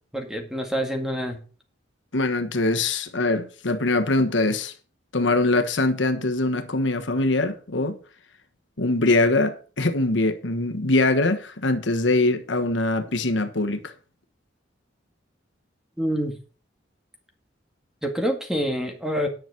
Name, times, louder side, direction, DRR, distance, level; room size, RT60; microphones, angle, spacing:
voice 1, 0.1-1.4 16.0-16.4 18.0-19.3, equal, 5° right, 1.9 m, -26 dB
voice 2, 2.1-4.7 5.1-8.0 8.8-13.9, left 2 dB, 75° left, 1.3 m, -23 dB
10.5 x 6.0 x 6.6 m
head